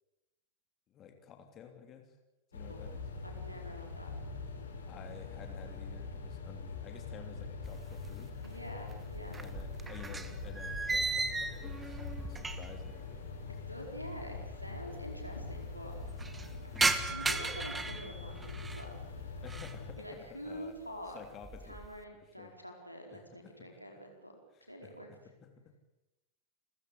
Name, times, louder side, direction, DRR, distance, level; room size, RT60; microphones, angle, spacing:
voice 1, 0.9-2.2 2.5-3.0 4.9-8.3 9.4-12.0 12.3-13.5 13.8-14.0 19.4-20.8 21.0-21.8 22.1-22.5 23.1-23.7 24.5-25.8, left 7 dB, 30° left, 5 dB, 3.1 m, -52 dB
sound 1, 2.5-19.9, left 4 dB, 70° left, 4.6 m, -43 dB
voice 2, 3.2-4.4 8.4-9.4 13.7-16.0 16.6-18.9 20.0-21.2 21.6-24.4 24.7-25.1, equal, 90° left, 1 dB, 4.7 m, -46 dB
sound 2, 7.6-8.5 8.8-12.9 13.2-13.3 14.1-14.2 14.4-14.5 14.8-15.3 15.7-18.9 19.3-19.8 20.3-20.7 21.1-22.0, right 3 dB, 10° right, 1.6 m, -36 dB
28.0 x 15.5 x 8.4 m, 0.97 s
figure-of-eight pair, 90°, 0 cm